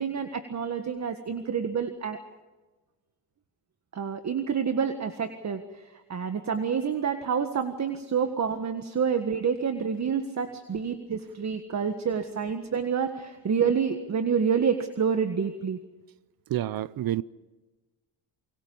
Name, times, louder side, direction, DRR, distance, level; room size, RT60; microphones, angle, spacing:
voice 1, 0.0-2.2 3.9-15.8, right 6 dB, 45° right, 1.6 m, -28 dB
voice 2, 16.5-17.2, right 13 dB, 60° right, 0.7 m, -28 dB
28.5 x 23.5 x 5.5 m
cardioid pair, 90°, 39 cm